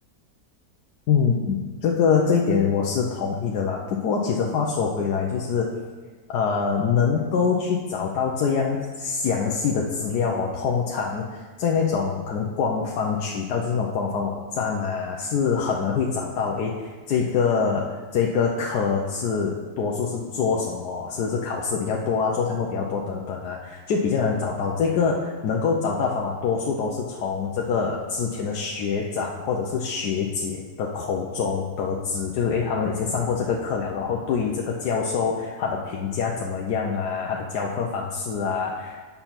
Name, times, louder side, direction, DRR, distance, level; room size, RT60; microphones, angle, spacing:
voice 1, 1.1-5.7 6.3-39.1, left 5 dB, 80° left, -1 dB, 1.3 m, -25 dB
8.9 x 5.7 x 5.8 m, 1.4 s
omnidirectional pair, 1.7 m